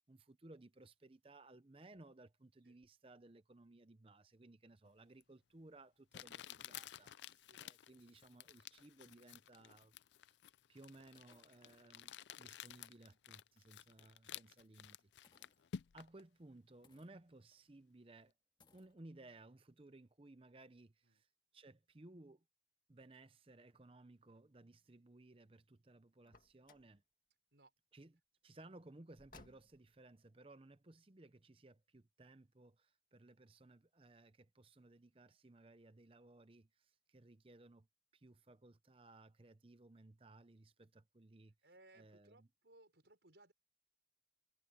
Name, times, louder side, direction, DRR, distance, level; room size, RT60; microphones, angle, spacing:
voice 1, 0.1-10.0 10.7-15.5 15.9-18.3 18.7-21.3 21.5-22.4 22.9-27.0 27.9-37.9 38.1-41.5 41.9-42.5, right 2 dB, 30° right, 0.7 m, -60 dB
Crumpling crinkling, 5.2-5.3 6.1-16.2, left 9 dB, 80° left, 0.4 m, -53 dB
sound 1, 10.7-12.1 12.6-12.7 13.1-13.2 15.2-16.1 16.8-17.6 17.9-18.0 18.6-19.0, left 3 dB, 25° left, 1.9 m, -73 dB
Car, 26.2-27.0 29.1-30.0, left 3 dB, 50° left, 2.1 m, -63 dB
voice 2, 41.6-43.5, right 2 dB, 80° right, 5.1 m, -65 dB
head